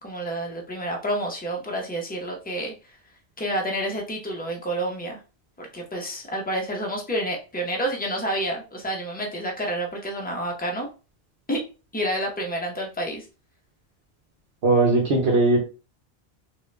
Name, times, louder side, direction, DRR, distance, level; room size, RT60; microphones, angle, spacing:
voice 1, 0.0-2.7 3.4-5.2 5.6-10.9 11.5-11.6 11.9-13.3, right 1 dB, 10° left, 0 dB, 0.7 m, -29 dB
voice 2, 14.6-15.6, right 2 dB, 75° right, -2 dB, 1.2 m, -19 dB
3.6 x 2.8 x 3.2 m, 0.33 s
omnidirectional pair, 1.1 m